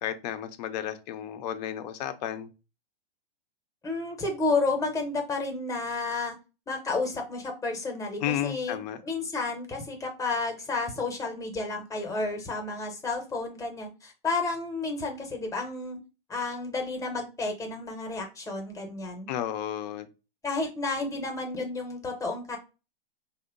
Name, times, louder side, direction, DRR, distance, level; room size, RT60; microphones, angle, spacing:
voice 1, 0.0-2.5 8.2-9.0 19.3-20.1, left 11 dB, 45° left, 0.5 m, -32 dB
voice 2, 3.8-6.3 6.7-8.8 9.0-16.0 16.3-19.3 20.4-22.6, left 3 dB, 10° left, 0.8 m, -31 dB
2.8 x 2.2 x 3.6 m
hypercardioid pair, 120°, 29 cm